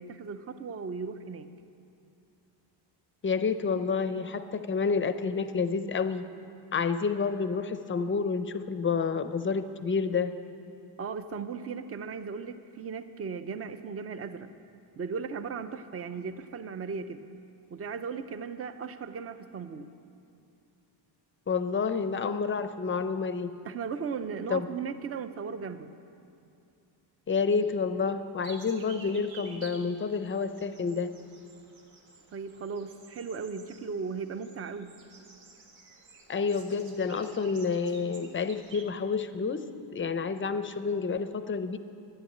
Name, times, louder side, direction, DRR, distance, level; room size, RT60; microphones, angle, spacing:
voice 1, 0.0-1.5 11.0-14.5 15.0-17.3 17.7-19.9 23.6-25.9 32.3-34.9, right 5 dB, 30° right, 11 dB, 0.6 m, -37 dB
voice 2, 3.2-6.2 6.7-10.3 21.5-23.6 24.5-24.7 27.3-31.1 36.3-41.8, left 5 dB, 30° left, 11 dB, 0.5 m, -29 dB
sound 1, 28.4-38.8, right 4 dB, 85° right, 1.7 m, -52 dB
12.5 x 11.0 x 8.6 m, 2.5 s
cardioid pair, 150°, 44 cm